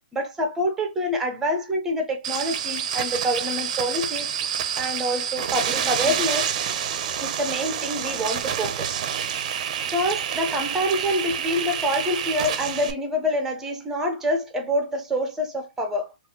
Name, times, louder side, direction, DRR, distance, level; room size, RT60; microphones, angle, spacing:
voice 1, 0.1-4.3 4.8-6.5 7.2-8.9 9.9-16.1, equal, 10° right, 0.7 m, -26 dB
sound 1, 2.2-12.9, right 8 dB, 45° right, 0.6 m, -28 dB
3.9 x 2.5 x 2.8 m
hypercardioid pair, 160°, 5 cm